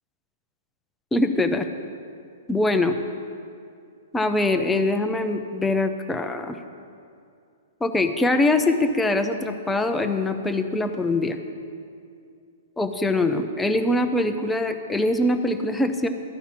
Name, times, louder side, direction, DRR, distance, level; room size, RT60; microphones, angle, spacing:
voice 1, 1.1-1.7 2.5-2.9 4.1-6.6 7.8-11.4 12.8-16.1, left 2 dB, 10° left, 6 dB, 0.7 m, -23 dB
12.5 x 5.8 x 8.7 m, 2.4 s
figure-of-eight pair, 110°, 0 cm